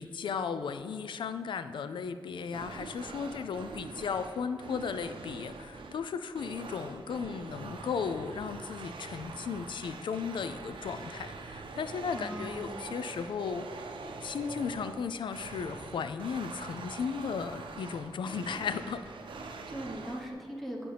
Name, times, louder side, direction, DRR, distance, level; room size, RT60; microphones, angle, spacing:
voice 1, 0.0-13.7 14.2-19.1, left 6 dB, 75° left, 11 dB, 0.4 m, -35 dB
sound 1, 2.4-20.3, right 3 dB, 85° right, 0.6 m, -44 dB
voice 2, 12.2-12.8 19.4-20.9, right 1 dB, ahead, -2 dB, 1.1 m, -40 dB
9.9 x 5.2 x 3.4 m, 2.2 s
wide cardioid pair, 100°, 8 cm